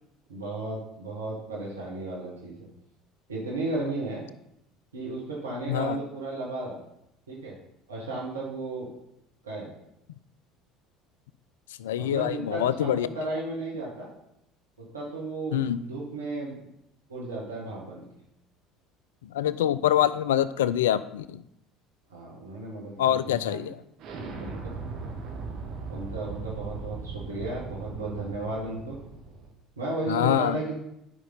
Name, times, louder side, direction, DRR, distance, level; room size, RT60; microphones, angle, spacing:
voice 1, 0.3-2.7 3.3-4.2 4.9-6.8 7.3-7.6 7.9-8.9 9.4-9.7 12.0-14.1 14.8-16.6 17.1-18.1 22.1-23.6 24.4-24.7 25.9-29.0 29.8-30.8, right 2 dB, 80° right, -4 dB, 1.7 m, -34 dB
voice 2, 5.7-6.0 11.8-13.1 15.5-15.8 19.3-21.4 23.0-23.8 30.1-30.6, left 11 dB, 70° left, 16 dB, 0.3 m, -25 dB
Explosion, 24.0-29.5, right 4 dB, 50° right, 1.3 m, -38 dB
11.0 x 5.3 x 3.9 m, 0.81 s
figure-of-eight pair, 60°, 0 cm